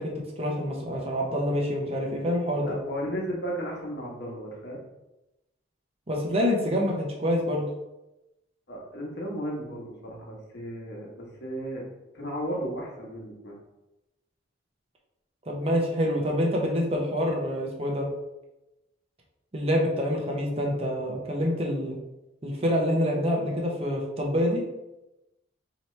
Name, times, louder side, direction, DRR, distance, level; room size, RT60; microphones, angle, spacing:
voice 1, 0.0-2.7 6.1-7.7 15.5-18.1 19.5-22.0 22.4-24.6, equal, 30° right, -1 dB, 0.7 m, -26 dB
voice 2, 2.7-4.8 8.7-11.8 12.1-13.6, equal, 60° left, -2 dB, 1.1 m, -34 dB
4.3 x 2.9 x 3.2 m, 0.95 s
head